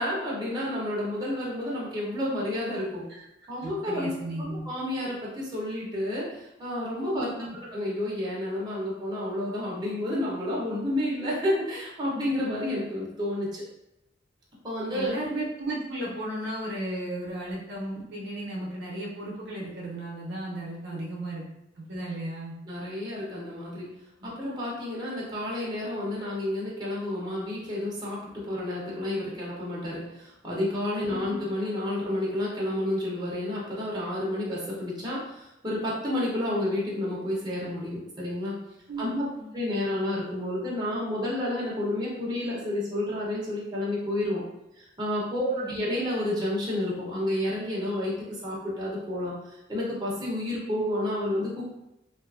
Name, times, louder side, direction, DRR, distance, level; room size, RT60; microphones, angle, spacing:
voice 1, 0.0-3.0 3.5-7.3 7.7-13.6 14.6-15.1 20.9-21.0 22.6-23.9 24.2-38.6 39.0-39.2 39.5-44.4 44.8-48.1 48.4-51.7, left 1 dB, 20° right, -6 dB, 0.7 m, -30 dB
voice 2, 3.6-4.6 7.1-7.5 14.9-21.4 21.8-22.5 24.2-24.3 31.0-31.4 38.9-39.5 45.5-45.8, right 1 dB, 65° right, -4 dB, 0.6 m, -35 dB
2.6 x 2.4 x 2.4 m, 0.88 s
head